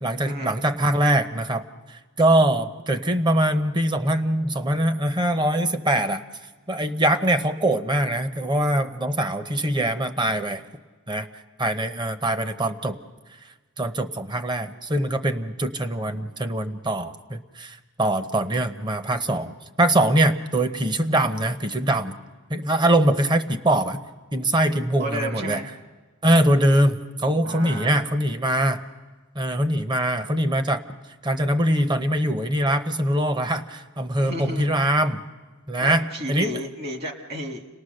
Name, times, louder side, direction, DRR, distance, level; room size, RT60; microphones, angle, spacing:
voice 1, 0.0-1.6 1.9-6.2 6.7-10.6 11.1-11.3 11.6-13.0 13.8-22.2 22.5-24.0 24.3-25.6 26.2-28.8 29.3-30.8 31.2-35.2 35.7-36.6, right 1 dB, 20° right, 9 dB, 0.8 m, -23 dB
voice 2, 25.0-25.7 27.5-27.9 34.2-34.7 35.8-37.7, equal, 45° right, 4 dB, 1.7 m, -32 dB
29.5 x 19.0 x 6.5 m, 1.3 s
head